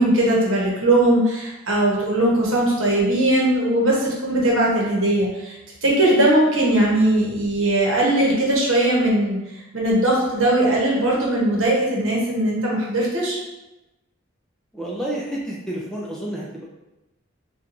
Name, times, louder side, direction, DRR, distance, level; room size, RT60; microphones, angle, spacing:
voice 1, 0.0-5.6 5.8-9.4 9.7-13.4, right 1 dB, 70° right, -3 dB, 0.9 m, -19 dB
voice 2, 14.7-16.6, right 1 dB, 5° left, -5 dB, 0.3 m, -30 dB
4.4 x 2.3 x 2.5 m, 1.0 s
head